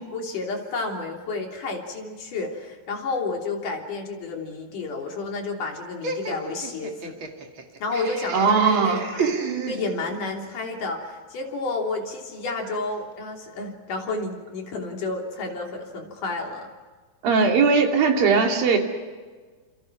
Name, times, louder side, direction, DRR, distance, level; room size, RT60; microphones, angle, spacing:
voice 1, 0.1-7.2 7.8-9.3 9.7-16.7, left 3 dB, 60° left, 2 dB, 4.7 m, -31 dB
Laughter, 6.0-10.3, right 5 dB, 40° right, 2.7 m, -31 dB
voice 2, 8.3-9.0 17.2-18.8, right 5 dB, 75° right, 2 dB, 4.7 m, -19 dB
29.5 x 28.0 x 6.0 m, 1.4 s
omnidirectional pair, 4.1 m